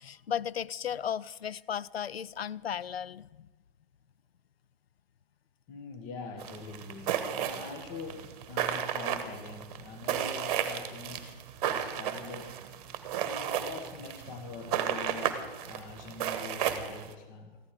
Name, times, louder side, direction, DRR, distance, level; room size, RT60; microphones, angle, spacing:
voice 1, 0.0-3.5, left 9 dB, 90° left, 20 dB, 0.5 m, -35 dB
voice 2, 5.7-11.4 11.7-12.6 13.2-17.6, left 4 dB, 30° left, 7 dB, 1.5 m, -44 dB
sound 1, 6.4-17.1, right 9 dB, 40° right, 1.2 m, -34 dB
15.0 x 11.5 x 4.9 m, 1.2 s
hypercardioid pair, 135°, 30 cm